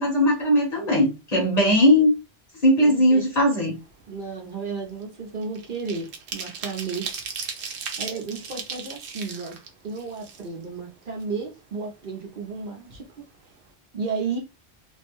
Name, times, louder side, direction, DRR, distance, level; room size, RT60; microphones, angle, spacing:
voice 1, 0.0-2.1 2.6-3.8, equal, 45° left, 0.8 m, -19 dB
voice 2, 2.8-3.2 4.1-7.1 7.5-7.7 8.0-9.6 9.8-13.2 13.9-14.4, right 4 dB, 60° right, 0.8 m, -33 dB
sound 1, 3.8-4.1 4.4-10.8 11.2-11.3 11.6-12.6 12.9-13.0 13.3-13.6, right 6 dB, 90° right, 0.9 m, -37 dB
2.5 x 2.1 x 2.9 m
omnidirectional pair, 1.1 m